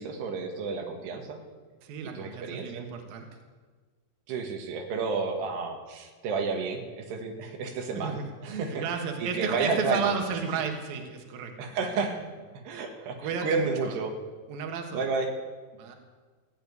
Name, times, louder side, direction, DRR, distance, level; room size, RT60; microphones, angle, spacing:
voice 1, 0.0-1.4 2.2-2.8 4.3-8.8 9.2-10.2 11.6-12.2 12.7-14.1 14.9-15.3, right 4 dB, 85° right, 3 dB, 3.6 m, -31 dB
voice 2, 1.8-3.4 7.9-12.2 13.2-14.0 14.5-15.1 15.7-16.0, right 6 dB, 65° right, 4 dB, 3.2 m, -33 dB
16.0 x 9.0 x 9.4 m, 1.4 s
omnidirectional pair, 4.6 m